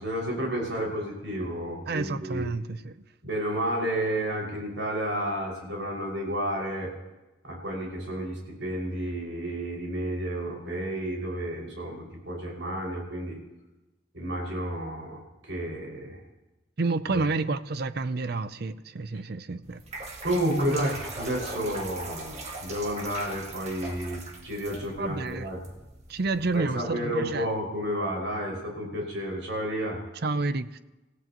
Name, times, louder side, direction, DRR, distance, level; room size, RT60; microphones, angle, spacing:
voice 1, 0.0-2.5 3.2-6.9 7.4-13.4 14.1-16.2 17.1-17.2 20.2-25.6 26.5-30.0, right 1 dB, 75° right, 5.8 m, -31 dB
voice 2, 1.9-3.0 16.8-19.8 25.0-25.5 26.1-27.5 30.2-30.8, right 3 dB, 55° right, 0.6 m, -29 dB
sound 1, 19.6-26.6, right 2 dB, 35° right, 1.8 m, -41 dB
26.5 x 16.0 x 3.0 m
head